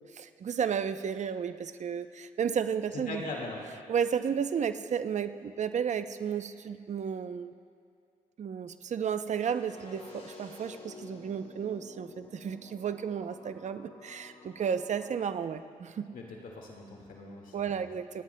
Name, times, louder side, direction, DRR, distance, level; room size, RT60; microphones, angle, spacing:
voice 1, 0.0-3.2 3.9-7.5 8.4-16.1 17.5-18.2, right 7 dB, 55° right, 10 dB, 0.6 m, -33 dB
voice 2, 3.1-3.6 16.1-17.9, left 2 dB, 75° left, 0 dB, 1.9 m, -40 dB
sound 1, 9.3-15.3, left 3 dB, 45° left, 2.5 m, -51 dB
28.0 x 9.8 x 2.2 m, 2.4 s
supercardioid pair, 60°, 14 cm